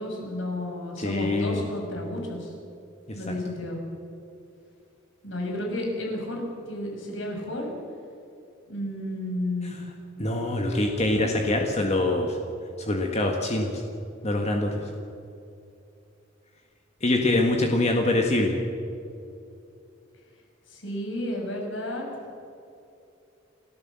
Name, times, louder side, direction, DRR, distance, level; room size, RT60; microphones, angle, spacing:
voice 1, 0.0-2.5 3.1-3.8 5.2-7.7 8.7-9.7 20.7-22.0, left 1 dB, 65° left, 0 dB, 6.2 m, -32 dB
voice 2, 1.0-1.6 3.1-3.3 10.2-12.4 12.8-13.8 14.2-14.7 17.0-18.6, left 2 dB, 35° left, 2 dB, 1.7 m, -24 dB
29.5 x 13.5 x 7.6 m, 2.7 s
head